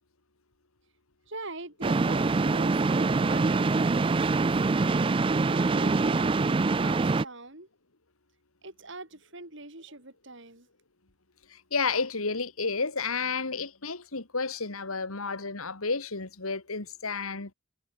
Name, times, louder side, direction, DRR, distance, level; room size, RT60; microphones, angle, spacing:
voice 1, 1.3-4.6 5.5-7.7 8.6-10.7, right 2 dB, 60° right, 5.9 m, -43 dB
sound 1, 1.8-7.2, right 3 dB, 25° right, 0.4 m, -24 dB
voice 2, 11.5-17.5, left 4 dB, 90° left, 2.4 m, -31 dB
head